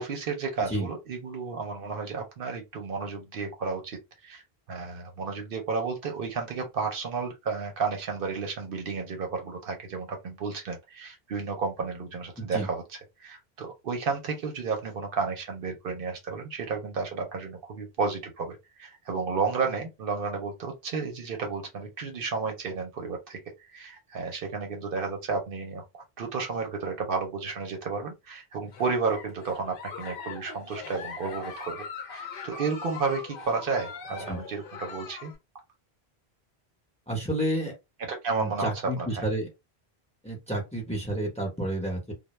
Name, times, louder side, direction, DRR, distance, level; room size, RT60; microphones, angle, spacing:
voice 1, 0.0-12.8 13.2-23.4 23.7-31.8 32.0-35.3 38.1-38.7 39.0-39.2, right 4 dB, 65° right, 0.7 m, -32 dB
voice 2, 12.4-12.7 34.3-34.4 37.1-37.7 38.4-39.5 40.2-42.1, right 1 dB, 5° left, 0.7 m, -30 dB
Giggle, 28.6-35.3, left 5 dB, 65° left, 0.8 m, -41 dB
2.2 x 2.0 x 2.9 m
omnidirectional pair, 1.0 m